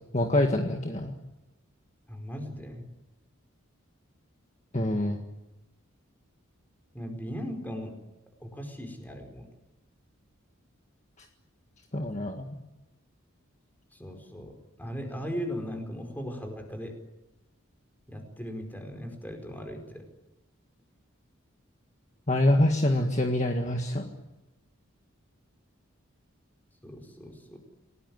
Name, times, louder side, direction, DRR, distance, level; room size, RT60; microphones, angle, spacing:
voice 1, 0.1-1.1 4.7-5.2 11.9-12.4 22.3-24.1, left 1 dB, 35° left, 3 dB, 1.8 m, -25 dB
voice 2, 2.1-2.9 6.9-7.9 8.4-9.5 13.9-17.0 18.1-20.0 26.8-27.6, equal, 10° left, 4 dB, 4.9 m, -38 dB
28.5 x 19.0 x 9.7 m, 1.0 s
head